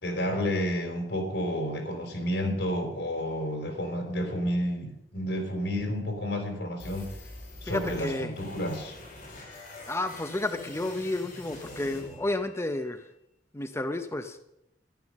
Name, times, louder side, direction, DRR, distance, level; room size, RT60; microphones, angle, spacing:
voice 1, 0.0-7.1 7.6-8.9, equal, 85° left, 3 dB, 4.1 m, -30 dB
sound 1, 6.8-12.8, left 2 dB, 55° left, 4.5 m, -45 dB
voice 2, 7.6-8.3 9.9-13.1 13.5-14.4, left 2 dB, 15° left, 8 dB, 0.7 m, -31 dB
13.0 x 11.0 x 6.5 m, 0.84 s
head